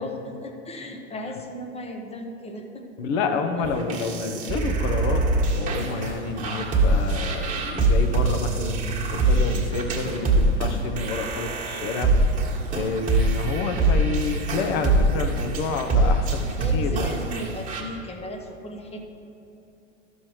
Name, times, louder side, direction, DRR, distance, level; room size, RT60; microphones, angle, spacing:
voice 1, 0.0-2.8 16.6-19.0, left 1 dB, 15° left, 3 dB, 0.9 m, -36 dB
voice 2, 3.0-5.2 5.5-12.1 12.7-17.1, left 4 dB, 50° left, 6 dB, 1.0 m, -29 dB
sound 1, 3.6-17.8, right 2 dB, 20° right, 1.6 m, -23 dB
14.0 x 6.2 x 3.1 m, 2.8 s
figure-of-eight pair, 80°, 38 cm